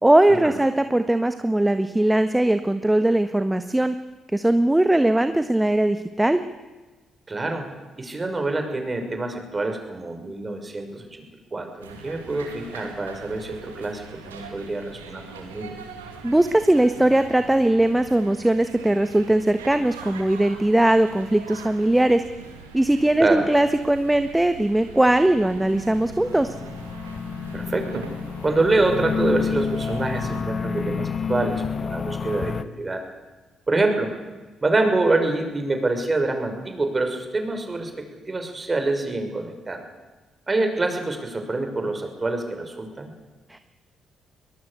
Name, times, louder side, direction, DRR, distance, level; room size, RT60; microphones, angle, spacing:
voice 1, 0.0-3.9 4.3-6.4 16.2-22.2 22.7-26.5 43.5-43.6, right 1 dB, 10° right, 9 dB, 1.4 m, -20 dB
voice 2, 7.3-7.7 8.0-11.2 11.5-15.8 23.2-23.4 27.5-28.1 28.4-33.0 33.7-34.1 34.6-39.8 40.5-43.1, right 2 dB, 30° right, 5 dB, 6.0 m, -26 dB
sound 1, 11.8-30.4, right 5 dB, 85° right, 2.5 m, -42 dB
sound 2, 25.5-32.6, left 6 dB, 45° left, 1.3 m, -29 dB
23.0 x 21.0 x 8.4 m, 1.2 s
figure-of-eight pair, 40°, 0 cm